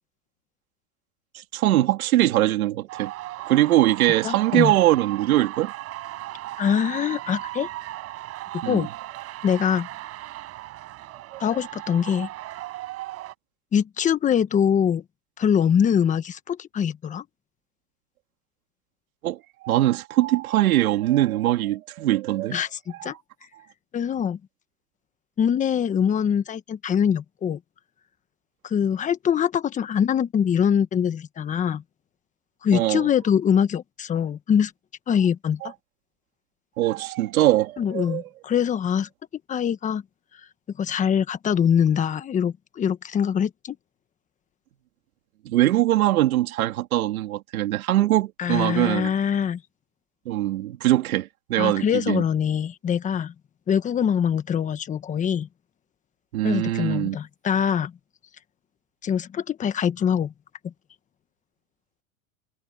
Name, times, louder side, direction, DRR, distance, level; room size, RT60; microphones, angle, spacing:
voice 1, 1.3-3.1 3.5-5.7 8.6-8.9 11.1-11.4 19.2-22.6 23.1-23.2 32.7-33.0 35.6-35.7 36.8-38.2 45.4-49.1 50.2-52.2 56.3-57.1, right 15 dB, 80° right, 3.0 m, -22 dB
sound 1, 2.9-13.3, right 16 dB, 35° right, 6.1 m, -37 dB
voice 2, 4.2-4.7 6.6-7.7 8.5-8.9 9.4-9.9 11.4-12.3 13.7-15.0 15.4-17.2 22.5-23.1 23.9-24.4 25.4-27.6 28.6-31.8 32.6-34.7 35.1-35.7 37.8-39.1 39.5-40.0 40.8-43.8 48.4-49.6 51.6-53.3 53.7-55.5 56.4-57.9 59.0-60.3 60.6-60.7, left 8 dB, 20° left, 1.3 m, -23 dB
supercardioid pair, 145°, 42 cm